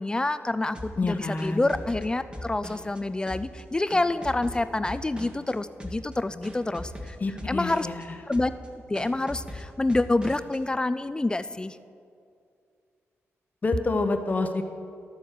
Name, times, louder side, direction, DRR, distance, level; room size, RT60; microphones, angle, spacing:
voice 1, 0.0-7.2 7.5-7.9 8.3-8.5 8.9-11.8, left 2 dB, 15° left, 13 dB, 0.3 m, -27 dB
sound 1, 0.7-3.0 3.3-5.5 5.8-6.1 6.4-8.0 8.3-8.7 8.9-10.6, equal, 20° right, 1.5 m, -40 dB
voice 2, 1.0-1.7 7.2-8.0 13.6-14.6, left 3 dB, 35° left, 6 dB, 0.8 m, -27 dB
12.5 x 7.6 x 6.5 m, 2.4 s
wide cardioid pair, 115°, 5 cm